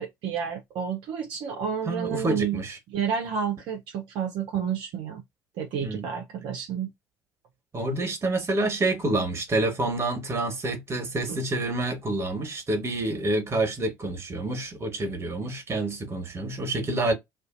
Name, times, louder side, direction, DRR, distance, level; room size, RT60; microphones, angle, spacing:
voice 1, 0.0-2.6 2.9-5.2 5.6-6.9 11.3-11.4, right 7 dB, 60° right, 0.7 m, -30 dB
voice 2, 1.9-2.8 5.8-6.1 7.7-17.1, right 2 dB, 30° right, 1.3 m, -28 dB
2.5 x 2.5 x 2.5 m
figure-of-eight pair, 55°, 9 cm